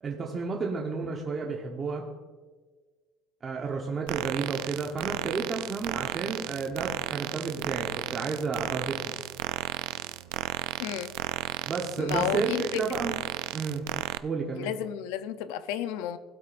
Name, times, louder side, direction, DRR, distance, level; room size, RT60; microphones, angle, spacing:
voice 1, 0.0-2.1 3.4-9.1 11.7-13.1 13.5-13.8 14.2-14.7, right 4 dB, 25° right, 0 dB, 1.0 m, -31 dB
sound 1, 4.1-14.2, right 17 dB, 85° right, 0.4 m, -34 dB
voice 2, 10.8-11.1 12.0-12.8 14.5-16.2, left 11 dB, 80° left, 12 dB, 0.6 m, -32 dB
17.5 x 8.4 x 2.6 m, 1.4 s
cardioid pair, 145°, 0 cm